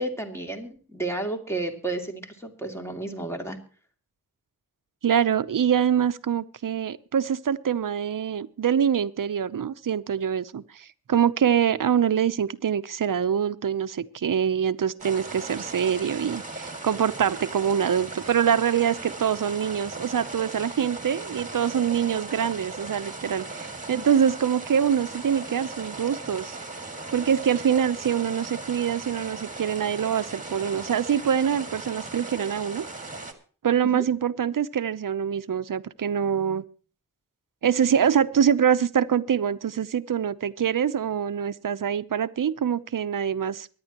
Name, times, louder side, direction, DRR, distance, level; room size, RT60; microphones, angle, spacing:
voice 1, 0.0-3.6 23.9-24.0 33.9-34.0, right 2 dB, 5° left, 3 dB, 2.6 m, -32 dB
voice 2, 5.0-26.6 27.1-32.8 33.6-36.6 37.6-43.7, right 8 dB, 65° right, 13 dB, 0.7 m, -24 dB
sound 1, 15.0-33.3, right 2 dB, 20° right, 2.3 m, -38 dB
24.0 x 10.5 x 3.0 m, 0.40 s
wide cardioid pair, 95°, 35 cm